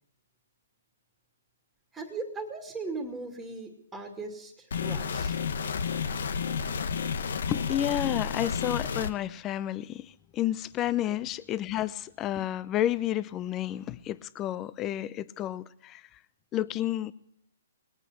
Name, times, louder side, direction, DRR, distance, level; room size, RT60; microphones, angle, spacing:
voice 1, 1.9-5.4 11.0-11.1, right 3 dB, 5° right, 3 dB, 2.3 m, -38 dB
sound 1, 4.7-9.1, left 6 dB, 70° left, 1.1 m, -31 dB
voice 2, 7.5-16.0 16.5-17.1, left 12 dB, 20° left, 17 dB, 0.6 m, -31 dB
20.5 x 9.0 x 8.0 m, 0.71 s
hypercardioid pair, 145°, 0 cm